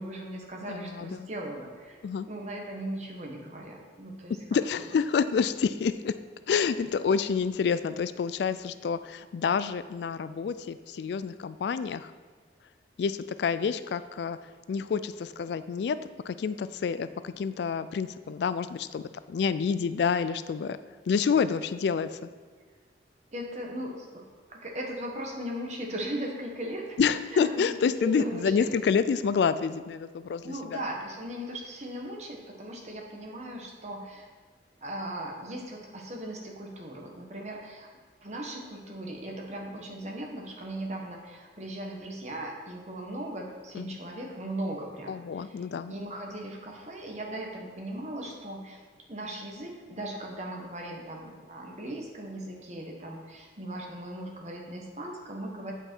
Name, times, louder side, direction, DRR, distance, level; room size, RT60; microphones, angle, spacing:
voice 1, 0.0-2.0 2.3-4.6 23.3-24.2 24.5-27.0 27.3-28.7 30.4-34.3 34.8-37.9 38.2-48.8 49.1-55.7, right 1 dB, 40° right, 0 dB, 1.2 m, -38 dB
voice 2, 0.7-1.3 2.0-2.3 4.5-6.1 6.5-12.1 13.0-14.4 14.7-16.0 16.3-19.0 19.3-20.8 21.1-22.3 27.0-30.8 43.7-44.0 45.1-45.9, left 6 dB, 70° left, 13 dB, 0.3 m, -28 dB
8.2 x 5.5 x 4.5 m, 1.5 s
head